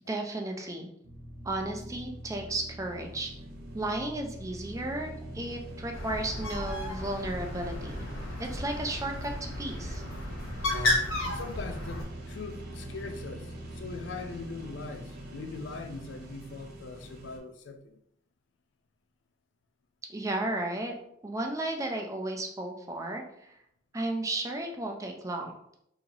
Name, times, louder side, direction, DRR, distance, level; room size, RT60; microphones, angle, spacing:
voice 1, 0.1-0.9 1.4-3.3 3.7-8.1 8.4-10.0 20.1-20.9 21.2-23.6 23.9-25.5, right 2 dB, 15° right, 0.4 m, -34 dB
sound 1, 1.0-17.4, right 1 dB, 50° right, 0.7 m, -43 dB
Bird, 5.9-12.0, left 1 dB, 90° left, 0.9 m, -33 dB
voice 2, 11.2-18.0, left 3 dB, 65° left, 0.4 m, -41 dB
2.9 x 2.7 x 3.9 m
head